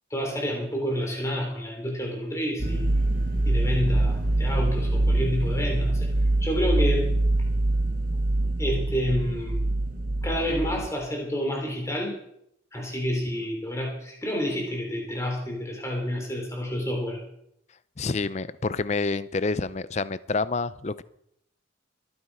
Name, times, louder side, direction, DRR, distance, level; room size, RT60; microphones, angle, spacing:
voice 1, 0.1-2.9 3.5-6.1 6.4-7.1 8.6-9.6 10.2-12.2 12.7-17.2, equal, 15° left, 0 dB, 3.6 m, -29 dB
sound 1, 2.6-10.9, right 2 dB, 45° right, 1.4 m, -24 dB
voice 2, 18.0-21.0, left 3 dB, 35° left, 17 dB, 0.5 m, -28 dB
23.0 x 9.9 x 4.9 m, 0.76 s
head